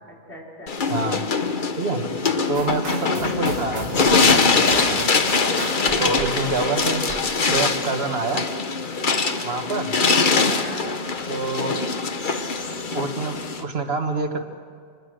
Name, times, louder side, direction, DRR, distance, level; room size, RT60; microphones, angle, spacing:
voice 1, 0.1-0.8 5.5-6.1 9.0-9.4 10.5-10.9, equal, 65° left, -3 dB, 5.0 m, -40 dB
sound 1, 0.7-13.6, left 4 dB, 45° left, 1.2 m, -22 dB
voice 2, 0.9-1.2 1.8-2.0 2.5-5.1 6.0-7.0 7.5-8.4 9.4-9.9 11.3-11.7 12.9-14.4, right 3 dB, 60° right, 4 dB, 1.8 m, -26 dB
sound 2, 2.5-7.7, right 3 dB, 75° right, 2.0 m, -37 dB
25.0 x 20.5 x 6.5 m, 2.2 s
omnidirectional pair, 1.2 m